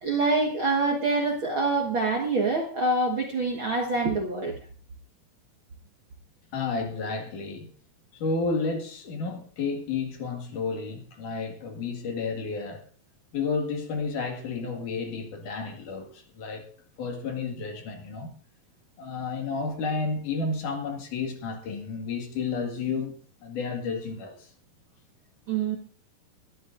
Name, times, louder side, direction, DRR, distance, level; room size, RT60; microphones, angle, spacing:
voice 1, 0.0-4.6 25.5-25.8, right 3 dB, 50° right, 1.6 m, -25 dB
voice 2, 6.5-7.7 8.1-12.8 13.3-16.7 17.0-18.3 19.0-23.1 23.4-24.5, left 4 dB, 60° left, 3.3 m, -31 dB
22.0 x 13.0 x 2.6 m
omnidirectional pair, 4.2 m